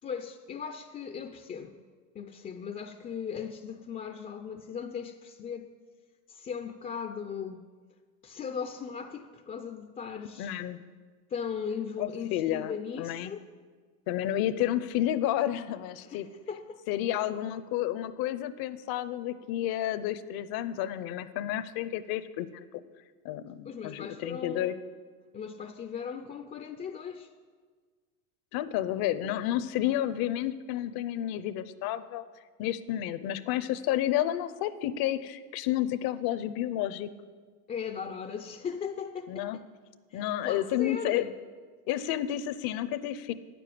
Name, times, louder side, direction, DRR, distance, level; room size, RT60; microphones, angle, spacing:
voice 1, 0.0-1.8 2.1-5.7 6.3-7.6 8.2-10.5 11.3-13.5 16.0-16.8 23.6-24.7 25.3-27.3 37.7-39.7 40.1-41.3, left 6 dB, 20° left, 6 dB, 0.4 m, -38 dB
voice 2, 10.4-10.8 12.0-13.3 14.1-16.3 16.9-22.8 23.2-24.8 28.5-32.2 32.6-37.1 39.3-39.6 40.1-41.2 41.9-43.3, left 12 dB, 55° left, 14 dB, 0.7 m, -31 dB
9.0 x 6.9 x 7.5 m, 1.5 s
supercardioid pair, 105°, 43 cm